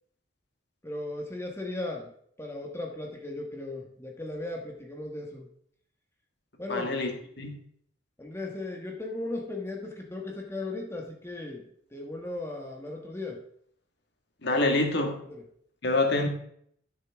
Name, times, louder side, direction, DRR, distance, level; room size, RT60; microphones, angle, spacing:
voice 1, 0.8-2.1 2.4-5.5 6.6-6.9 8.2-13.4 15.2-15.4, left 2 dB, 15° left, 0 dB, 1.4 m, -37 dB
voice 2, 6.7-7.6 14.4-15.2 15.8-16.3, left 2 dB, 60° left, 4 dB, 1.7 m, -26 dB
13.0 x 6.7 x 3.5 m, 0.65 s
head